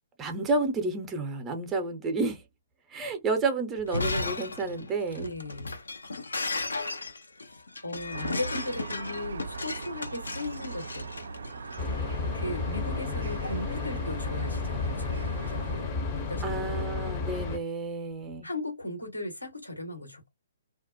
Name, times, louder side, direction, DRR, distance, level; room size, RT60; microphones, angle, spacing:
voice 1, 0.2-2.4 2.9-5.3 16.4-18.5, right 3 dB, 15° right, 0.6 m, -30 dB
Shatter, 3.8-11.8, left 3 dB, 70° left, 0.5 m, -35 dB
voice 2, 5.2-5.8 7.4-11.3 12.3-16.4 18.4-20.3, left 2 dB, 85° left, 1.2 m, -37 dB
sound 1, 8.1-15.8, right 4 dB, 60° right, 0.3 m, -41 dB
sound 2, 11.8-17.6, left 4 dB, 30° left, 0.7 m, -32 dB
2.4 x 2.0 x 2.6 m
figure-of-eight pair, 125°, 0 cm